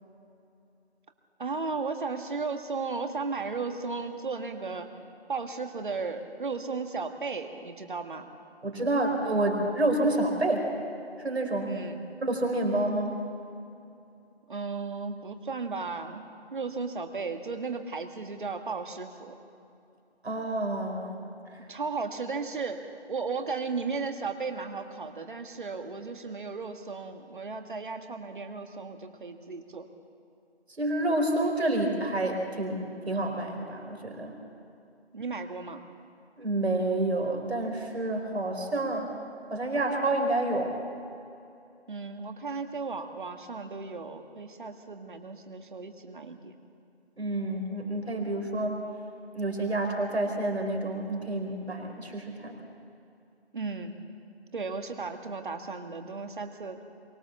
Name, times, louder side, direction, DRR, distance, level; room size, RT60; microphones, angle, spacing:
voice 1, 1.4-4.9 5.3-8.3 11.6-12.0 14.5-16.2 16.5-19.3 21.7-29.9 35.1-35.8 41.9-46.6 53.5-53.9 54.5-56.8, right 4 dB, 50° right, 6 dB, 1.8 m, -35 dB
voice 2, 8.6-10.7 11.2-11.7 12.2-13.1 20.2-21.2 21.5-21.6 30.8-34.3 36.4-39.1 39.5-40.7 47.2-48.8 49.3-52.6, right 2 dB, 70° right, 2 dB, 4.2 m, -28 dB
24.0 x 17.5 x 7.1 m, 2.6 s
figure-of-eight pair, 170°, 33 cm